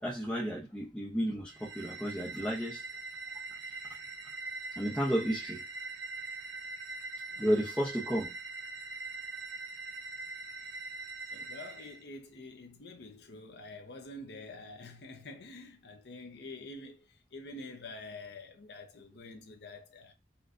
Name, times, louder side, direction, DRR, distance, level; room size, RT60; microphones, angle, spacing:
voice 1, 0.0-2.8 4.8-5.6 7.4-8.3, equal, 5° left, 0.6 m, -32 dB
sound 1, 1.5-12.0, right 3 dB, 80° right, 0.7 m, -42 dB
voice 2, 11.3-20.1, left 2 dB, 65° left, 0.6 m, -47 dB
4.3 x 2.2 x 2.4 m
head